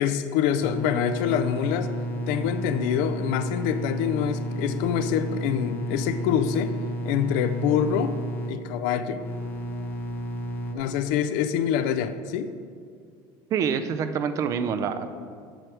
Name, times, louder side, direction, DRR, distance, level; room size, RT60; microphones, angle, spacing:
voice 1, 0.0-1.9 2.3-6.7 7.0-8.1 8.5-9.2 10.7-12.5, left 9 dB, 70° left, 11 dB, 0.5 m, -25 dB
sound 1, 0.6-10.7, equal, 20° left, 0.6 m, -32 dB
voice 2, 13.5-15.1, right 7 dB, 30° right, 10 dB, 0.4 m, -26 dB
7.7 x 4.7 x 6.3 m, 2.2 s
cardioid pair, 165°, 10 cm